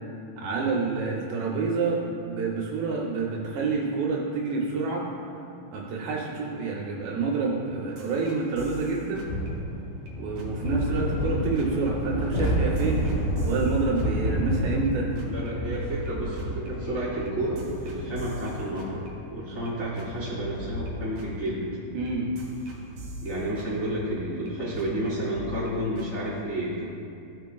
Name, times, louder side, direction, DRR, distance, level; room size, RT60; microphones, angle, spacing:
voice 1, 0.4-2.0 2.3-5.0 5.7-9.3 10.2-15.1 21.9-22.3, right 4 dB, 80° right, -3 dB, 2.5 m, -28 dB
sound 1, 8.0-10.1 10.4-10.7 11.0-14.9 15.2-15.5 15.8-19.7 20.0-20.3 20.6-24.5 24.8-25.1 25.4-26.6, left 1 dB, 65° right, 1.7 m, -43 dB
sound 2, 9.2-25.0, equal, 90° left, 1.9 m, -31 dB
voice 2, 15.2-19.0 19.3-21.7 23.2-26.7, right 1 dB, 55° left, -12 dB, 1.1 m, -31 dB
15.5 x 5.8 x 2.3 m, 2.6 s
omnidirectional pair, 5.4 m